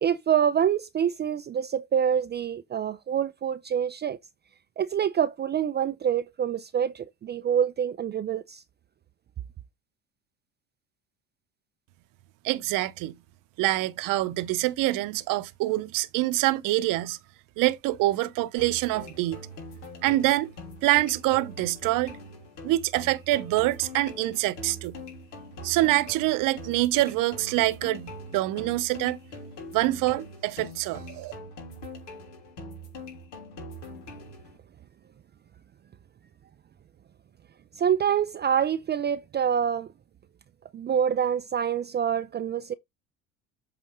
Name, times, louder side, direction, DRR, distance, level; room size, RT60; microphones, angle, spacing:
voice 1, 0.0-4.2 4.8-8.6 37.8-39.9 40.7-42.7, right 8 dB, 30° right, 0.5 m, -26 dB
voice 2, 12.4-13.1 13.6-17.2 17.6-19.4 20.0-20.5 20.8-22.2 22.6-25.0 25.6-29.2 29.7-31.3, right 17 dB, 60° right, 0.8 m, -25 dB
sound 1, 18.6-34.6, left 1 dB, 80° left, 3.5 m, -43 dB
8.0 x 4.2 x 3.6 m
hypercardioid pair, 70°, 37 cm